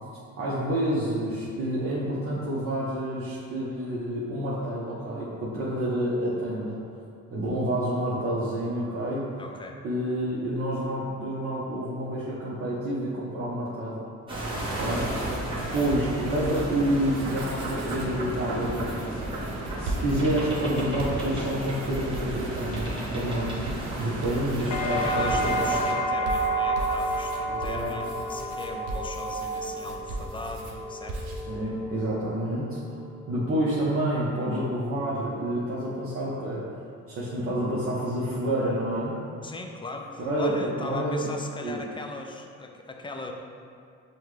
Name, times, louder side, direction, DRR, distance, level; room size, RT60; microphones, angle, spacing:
voice 1, 0.4-6.8 7.3-9.2 9.8-14.0 14.6-15.3 15.7-19.2 19.8-23.6 24.0-25.6 27.5-27.9 31.5-33.0 33.3-36.6 37.1-39.2 40.2-40.5 40.8-41.3 41.6-41.8, right 1 dB, 45° right, -8 dB, 0.7 m, -28 dB
voice 2, 9.4-9.8 15.5-15.9 24.9-31.3 39.4-43.3, left 2 dB, 15° left, 2 dB, 0.3 m, -39 dB
sound 1, 14.3-25.9, right 1 dB, 15° right, 1.1 m, -33 dB
sound 2, 14.5-15.9 16.3-16.7 17.0-18.2 18.6-25.8 26.3-30.8 31.1-31.4, right 2 dB, 80° right, 0.6 m, -38 dB
sound 3, 24.7-32.6 33.0-33.6, right 1 dB, 90° left, 0.5 m, -30 dB
5.5 x 2.2 x 3.2 m, 2.3 s
cardioid pair, 90°, 30 cm